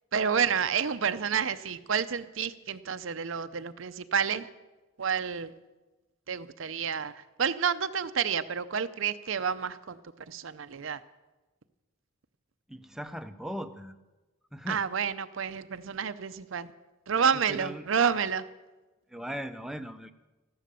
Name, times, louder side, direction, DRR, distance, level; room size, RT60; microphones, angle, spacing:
voice 1, 0.1-4.5 5.0-5.5 6.3-10.0 10.3-11.0 14.7-16.7 17.1-18.4, right 7 dB, 70° right, 12 dB, 0.6 m, -29 dB
voice 2, 12.7-14.0 14.5-14.9 17.3-17.9 19.1-20.1, equal, ahead, 8 dB, 0.6 m, -38 dB
14.5 x 12.5 x 6.9 m, 1.1 s
head